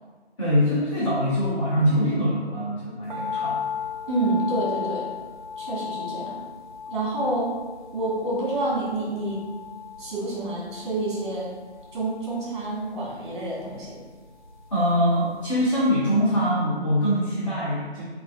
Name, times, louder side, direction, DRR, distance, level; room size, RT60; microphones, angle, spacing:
voice 1, 0.4-3.6 14.7-18.0, equal, 30° left, -10 dB, 0.8 m, -23 dB
sound 1, 3.1-15.4 15.6-15.7, left 7 dB, 45° right, 0.6 m, -36 dB
voice 2, 4.1-5.1 5.6-6.4 6.9-7.5 7.9-9.4 10.0-11.5 11.9-14.0, right 2 dB, 25° right, -5 dB, 1.1 m, -28 dB
5.6 x 2.6 x 2.3 m, 1.4 s
figure-of-eight pair, 145°, 33 cm